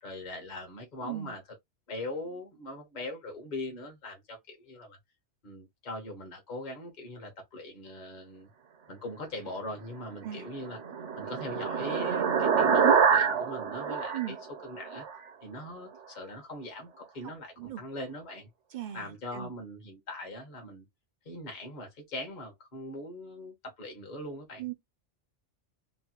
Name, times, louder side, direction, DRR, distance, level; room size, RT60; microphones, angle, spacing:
voice 1, 0.0-1.4 1.9-5.0 5.4-8.5 8.9-10.8 11.2-14.3 14.6-15.0 15.4-18.5 18.9-20.8 21.2-24.6, left 1 dB, 40° left, 1.1 m, -41 dB
voice 2, 1.0-1.4 10.2-10.5 14.1-14.4 17.6-17.8 18.7-19.5 24.6-24.7, right 12 dB, 60° right, 0.5 m, -38 dB
sound 1, 10.4-15.2, right 6 dB, 80° right, 1.1 m, -26 dB
3.1 x 2.2 x 2.8 m
omnidirectional pair, 1.2 m